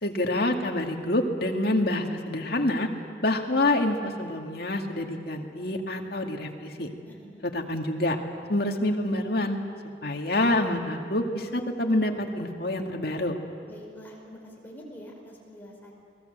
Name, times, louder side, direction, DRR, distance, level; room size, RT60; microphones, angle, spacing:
voice 1, 0.0-2.9 3.2-6.9 7.4-8.2 8.5-9.6 10.0-13.3, left 1 dB, 55° left, 2 dB, 2.2 m, -27 dB
voice 2, 7.0-7.5 13.7-15.9, equal, 10° left, -2 dB, 5.0 m, -46 dB
29.0 x 20.5 x 8.0 m, 2.3 s
head